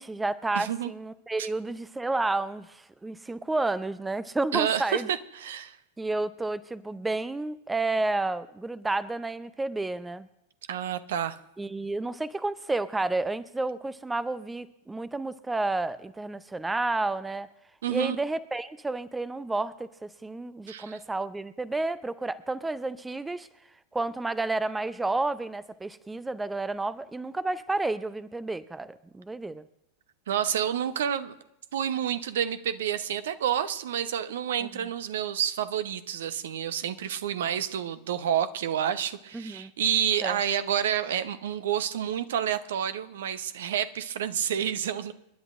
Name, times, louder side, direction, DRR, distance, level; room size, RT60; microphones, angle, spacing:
voice 1, 0.0-5.1 6.0-10.3 11.6-17.5 17.9-23.5 23.9-29.6 39.3-39.7 40.2-40.4, right 2 dB, 10° right, 16 dB, 0.5 m, -31 dB
voice 2, 0.5-0.9 1.4-1.5 4.5-5.8 10.7-11.4 17.8-18.2 20.7-21.0 30.3-31.3 31.7-45.1, right 9 dB, 60° right, 12 dB, 0.9 m, -29 dB
28.5 x 11.0 x 2.6 m, 0.81 s
figure-of-eight pair, 90°, 0 cm